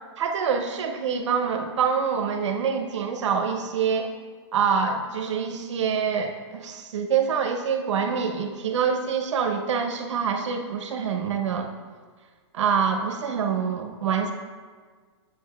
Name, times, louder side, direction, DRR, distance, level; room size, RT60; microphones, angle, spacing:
voice 1, 0.2-4.1 4.5-11.7 12.5-14.3, right 6 dB, 80° right, 4 dB, 0.7 m, -25 dB
7.5 x 6.6 x 2.3 m, 1.5 s
hypercardioid pair, 165°, 15 cm